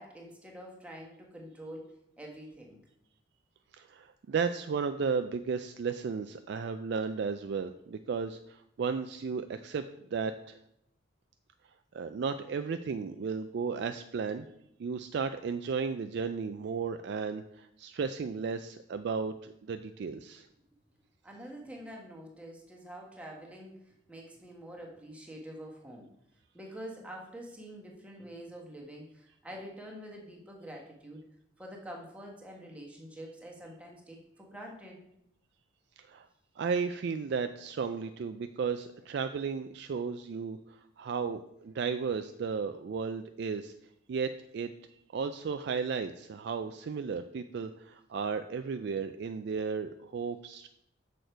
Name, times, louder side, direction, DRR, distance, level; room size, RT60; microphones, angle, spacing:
voice 1, 0.0-2.8 21.2-26.1 26.5-31.2 31.6-35.0, equal, 5° right, -2 dB, 1.3 m, -46 dB
voice 2, 3.7-9.8 10.1-10.6 11.9-14.4 14.8-20.5 36.0-36.3 36.6-43.7 44.1-44.7 45.1-50.7, right 5 dB, 55° right, 9 dB, 0.3 m, -34 dB
6.5 x 6.5 x 4.5 m, 0.77 s
head